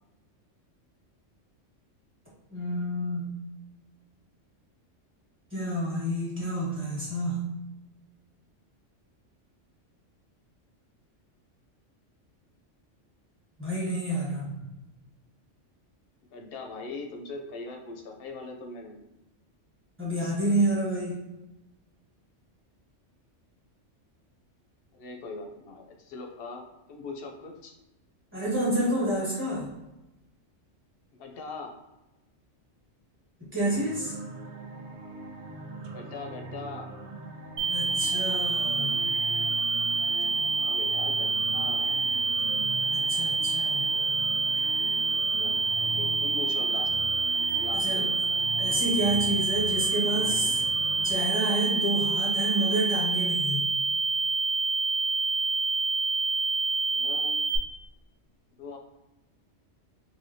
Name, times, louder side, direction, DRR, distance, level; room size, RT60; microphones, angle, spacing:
voice 1, 2.5-3.4 5.5-7.5 13.6-14.5 20.0-21.1 28.3-29.7 33.5-34.1 37.7-39.0 42.9-43.8 47.7-48.1 48.6-50.6 51.0-53.7, right 1 dB, 10° right, -7 dB, 1.2 m, -29 dB
voice 2, 16.3-19.0 24.9-26.6 26.9-27.7 31.2-31.7 35.9-36.9 40.6-42.1 45.3-47.1 47.5-48.1 56.9-57.5 58.6-58.8, left 3 dB, 60° left, 3 dB, 0.7 m, -41 dB
sound 1, 33.7-51.1, right 2 dB, 70° right, 0.9 m, -42 dB
sound 2, 37.6-57.6, right 4 dB, 50° right, 0.5 m, -27 dB
3.3 x 2.6 x 2.7 m, 1.0 s
omnidirectional pair, 1.3 m